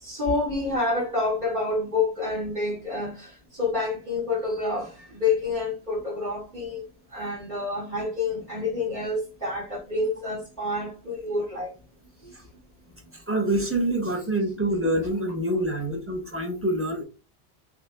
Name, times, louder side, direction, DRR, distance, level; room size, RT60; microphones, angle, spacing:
voice 1, 0.0-6.8 7.1-11.7 12.2-12.3, left 3 dB, 45° right, 2.4 m, -28 dB
voice 2, 13.3-17.0, right 1 dB, 15° right, 0.9 m, -26 dB
6.3 x 2.9 x 2.3 m
omnidirectional pair, 1.1 m